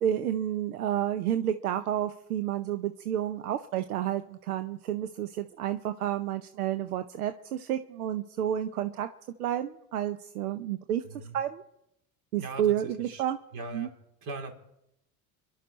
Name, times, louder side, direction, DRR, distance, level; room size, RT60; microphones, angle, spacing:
voice 1, 0.0-9.1 9.4-11.6 12.3-13.4 13.7-13.9, right 11 dB, 85° right, 9 dB, 0.7 m, -30 dB
voice 2, 11.0-11.4 12.4-12.6 13.0-13.2 13.5-13.9 14.2-14.5, right 3 dB, 50° right, 3 dB, 3.7 m, -39 dB
26.0 x 12.0 x 4.1 m, 0.84 s
hypercardioid pair, 65°, 43 cm